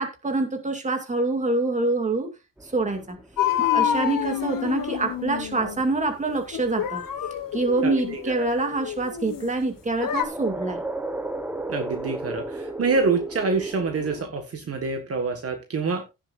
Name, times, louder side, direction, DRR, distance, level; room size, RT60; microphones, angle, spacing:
voice 1, 0.0-2.3 2.7-3.2 3.6-7.0 7.5-10.8, right 3 dB, 20° right, 5 dB, 2.2 m, -26 dB
sound 1, 2.6-14.2, right 2 dB, 5° right, 1.0 m, -37 dB
sound 2, 3.4-5.8 6.5-9.5 10.0-10.2, left 10 dB, 90° left, 1.5 m, -27 dB
voice 2, 7.8-8.5 11.7-16.0, right 4 dB, 45° right, 4 dB, 1.6 m, -26 dB
17.0 x 7.2 x 2.6 m, 0.26 s
wide cardioid pair, 175°, 33 cm